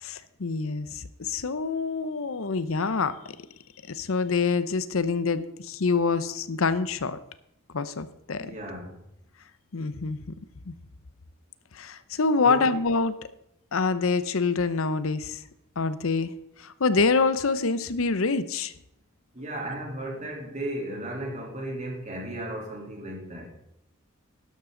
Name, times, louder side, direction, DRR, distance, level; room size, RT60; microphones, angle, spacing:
voice 1, 0.0-3.4 3.9-7.2 7.7-8.5 9.7-10.2 10.7-10.8 11.7-13.1 13.7-15.4 15.8-16.3 16.6-18.7, left 4 dB, 75° left, 13 dB, 0.7 m, -26 dB
voice 2, 8.4-9.0 12.4-12.8 19.3-23.5, right 1 dB, 35° right, -1 dB, 3.3 m, -35 dB
12.0 x 11.5 x 3.9 m, 0.80 s
head